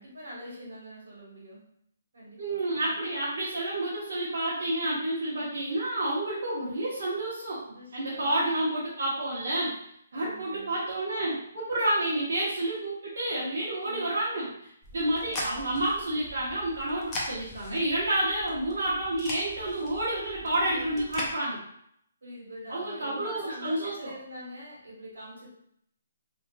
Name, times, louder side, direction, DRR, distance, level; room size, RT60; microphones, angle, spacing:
voice 1, 0.0-1.6 2.1-3.0 7.7-8.7 10.1-10.8 13.8-14.1 15.2-15.6 20.4-20.9 22.2-25.5, equal, 85° right, -5 dB, 1.3 m, -44 dB
voice 2, 2.4-7.6 7.9-9.8 10.1-21.6 22.7-23.9, right 1 dB, 65° right, -10 dB, 1.0 m, -29 dB
sound 1, 14.8-21.3, left 1 dB, 15° left, 0.4 m, -40 dB
2.8 x 2.4 x 2.3 m, 0.71 s
hypercardioid pair, 170°, 0 cm